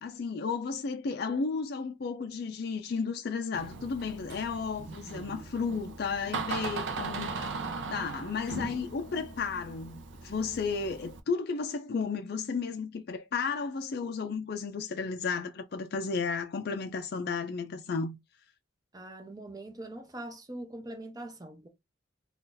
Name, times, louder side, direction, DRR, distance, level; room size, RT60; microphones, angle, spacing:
voice 1, 0.0-18.2, left 5 dB, 55° left, 0.4 m, -33 dB
Door, 3.5-11.2, right 4 dB, 70° right, 0.5 m, -39 dB
voice 2, 18.9-21.7, right 1 dB, 20° right, 0.6 m, -42 dB
2.6 x 2.4 x 3.7 m
head